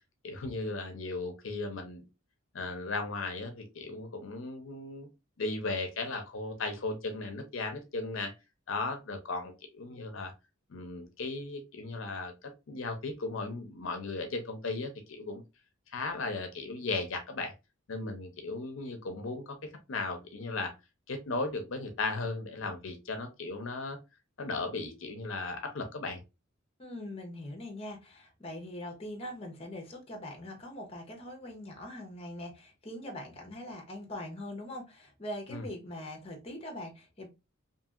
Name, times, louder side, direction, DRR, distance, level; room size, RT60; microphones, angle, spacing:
voice 1, 0.2-2.0 2.5-5.1 5.4-8.3 8.7-10.3 10.7-15.4 15.9-17.5 17.9-20.7 21.1-24.0 24.4-26.2 35.5-35.7, left 3 dB, 65° left, 5 dB, 0.6 m, -36 dB
voice 2, 26.8-37.3, left 1 dB, 30° left, 3 dB, 0.7 m, -42 dB
2.7 x 2.7 x 2.4 m, 0.25 s
head